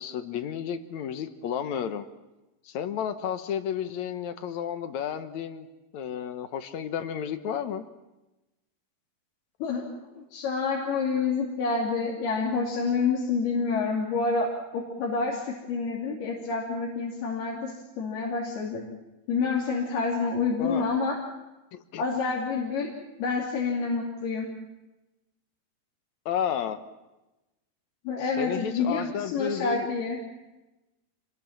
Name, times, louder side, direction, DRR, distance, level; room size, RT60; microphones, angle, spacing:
voice 1, 0.0-2.1 2.7-5.7 5.9-7.8 20.6-20.9 21.7-22.0 26.3-26.8 28.4-29.9, left 9 dB, 65° left, 9 dB, 1.9 m, -32 dB
voice 2, 10.2-14.5 14.7-18.8 19.3-21.2 22.0-22.9 23.2-24.5 28.0-30.2, left 4 dB, 80° left, -3 dB, 4.9 m, -28 dB
27.0 x 22.0 x 7.3 m, 1.0 s
omnidirectional pair, 4.4 m